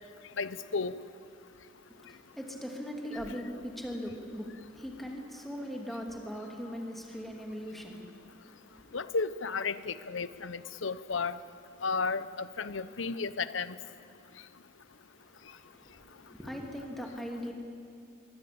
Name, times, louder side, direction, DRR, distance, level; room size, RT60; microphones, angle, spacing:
voice 1, 0.4-0.9 8.9-11.4 11.8-13.7, left 4 dB, 80° left, 14 dB, 0.9 m, -33 dB
voice 2, 1.9-8.3 8.7-9.0 15.2-17.5, equal, ahead, 0 dB, 3.0 m, -40 dB
23.5 x 22.5 x 8.7 m, 2.5 s
head